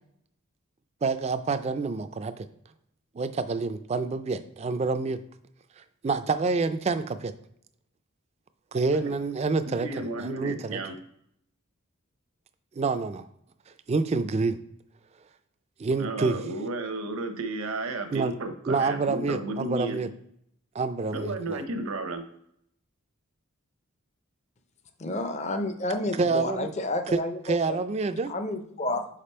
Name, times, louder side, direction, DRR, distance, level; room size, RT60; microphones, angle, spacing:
voice 1, 1.0-2.5 3.1-5.2 5.8-7.3 8.7-9.9 10.2-10.8 12.8-13.2 13.9-14.6 15.8-16.4 18.1-18.3 18.7-20.1 20.7-21.6 26.2-26.7 27.1-27.2 27.5-28.3, right 4 dB, 30° right, 10 dB, 0.3 m, -27 dB
voice 2, 9.8-11.0 16.0-20.0 21.1-22.2, right 2 dB, 75° right, 6 dB, 0.7 m, -33 dB
voice 3, 25.0-27.4 27.7-27.8 28.3-29.1, left 2 dB, 30° left, 7 dB, 0.5 m, -30 dB
5.1 x 4.7 x 4.3 m, 0.72 s
head